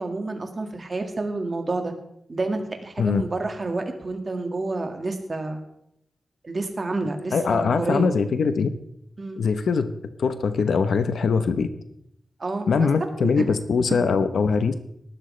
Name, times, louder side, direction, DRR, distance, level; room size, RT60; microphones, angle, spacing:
voice 1, 0.0-1.9 2.3-5.6 6.4-8.1 9.2-9.4 12.4-12.9 13.4-13.5, right 2 dB, 35° right, 4 dB, 1.9 m, -29 dB
voice 2, 7.3-8.7 9.4-9.9 10.2-11.7 12.7-14.7, left 5 dB, 80° left, 10 dB, 0.9 m, -22 dB
18.5 x 12.0 x 3.3 m, 0.75 s
wide cardioid pair, 120°, 0 cm